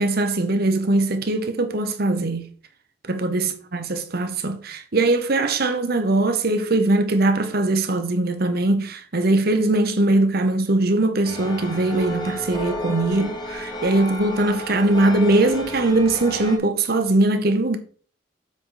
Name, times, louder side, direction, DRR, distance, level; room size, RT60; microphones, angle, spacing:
voice 1, 0.0-2.5 3.1-17.8, right 2 dB, 60° right, 1.0 m, -21 dB
sound 1, 11.2-16.6, left 1 dB, 25° left, 1.4 m, -32 dB
7.5 x 4.9 x 3.9 m
head